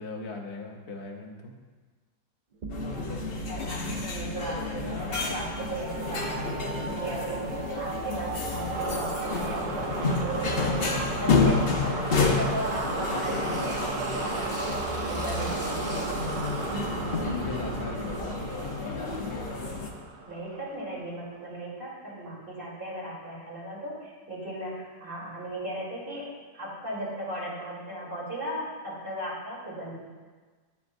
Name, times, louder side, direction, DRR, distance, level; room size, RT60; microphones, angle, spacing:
voice 1, 0.0-1.5 17.0-18.4, left 3 dB, 70° left, 1 dB, 1.6 m, -37 dB
sound 1, 2.6-21.1, right 3 dB, 60° right, 0.5 m, -35 dB
sound 2, 2.7-19.9, left 4 dB, 45° left, 0.9 m, -30 dB
voice 2, 3.5-7.4 7.8-16.3 20.3-26.3 26.5-30.0, right 1 dB, 35° right, -7 dB, 3.3 m, -37 dB
Tearing, 12.3-17.1, equal, 10° right, 1.9 m, -43 dB
10.5 x 9.4 x 2.6 m, 1.4 s
omnidirectional pair, 1.7 m